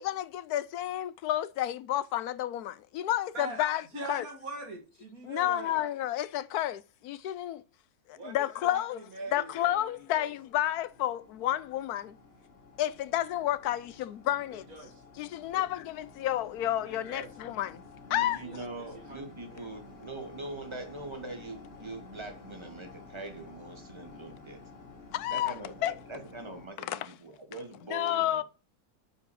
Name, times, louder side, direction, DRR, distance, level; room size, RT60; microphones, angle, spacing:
voice 1, 0.0-4.2 5.2-7.6 8.1-9.0 9.3-12.2 12.8-14.7 15.2-17.8 18.1-18.4 25.1-25.5 25.8-25.9 26.8-27.1 27.9-28.4, left 12 dB, 90° left, 1.1 m, -31 dB
voice 2, 3.9-5.8 8.1-10.3 14.5-15.0 15.5-15.6 16.8-17.3 18.2-19.2 19.5-19.7, right 2 dB, 70° right, 2.4 m, -43 dB
sound 1, 9.1-26.7, left 3 dB, 40° left, 1.7 m, -52 dB
voice 3, 18.1-24.6 25.3-28.4, right 2 dB, 20° right, 1.4 m, -43 dB
6.9 x 4.7 x 6.3 m
omnidirectional pair, 1.6 m